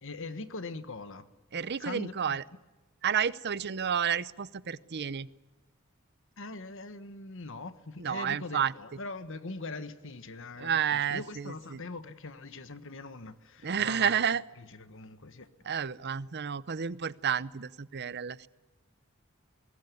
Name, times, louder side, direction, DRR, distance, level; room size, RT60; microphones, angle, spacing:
voice 1, 0.0-1.3 1.8-2.4 6.4-14.2 14.6-15.5, left 3 dB, 65° left, 1.4 m, -42 dB
voice 2, 1.5-2.4 3.0-5.3 8.0-8.7 10.6-11.8 13.6-14.4 15.6-18.5, right 8 dB, 50° right, 0.7 m, -30 dB
22.5 x 19.5 x 9.5 m
head